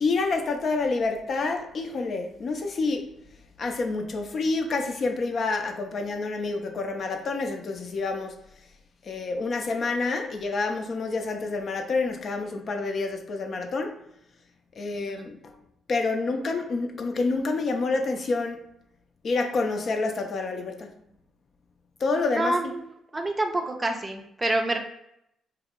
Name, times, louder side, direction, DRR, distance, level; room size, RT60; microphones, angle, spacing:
voice 1, 0.0-3.1 3.6-8.4 9.0-14.0 14.8-15.5 15.9-18.6 19.2-20.9 22.0-22.7, left 3 dB, 55° left, 4 dB, 0.4 m, -28 dB
voice 2, 22.3-24.8, right 2 dB, 25° right, 4 dB, 0.5 m, -27 dB
2.7 x 2.0 x 3.6 m, 0.78 s
hypercardioid pair, 50°, 0 cm